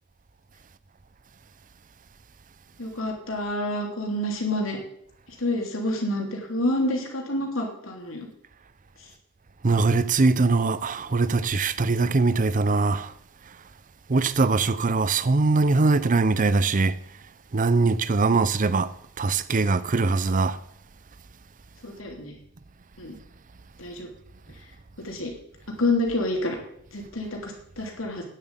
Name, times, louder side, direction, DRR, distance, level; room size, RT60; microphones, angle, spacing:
voice 1, 2.8-4.8 5.4-8.3 21.8-22.3 23.0-23.1 23.8-24.1 25.0-25.3 25.8-26.6 26.9-28.2, left 1 dB, 75° left, 3.0 m, -28 dB
voice 2, 9.6-13.1 14.1-16.9 17.5-18.9 19.2-20.6, right 3 dB, 40° right, 0.6 m, -22 dB
9.9 x 7.3 x 8.1 m
head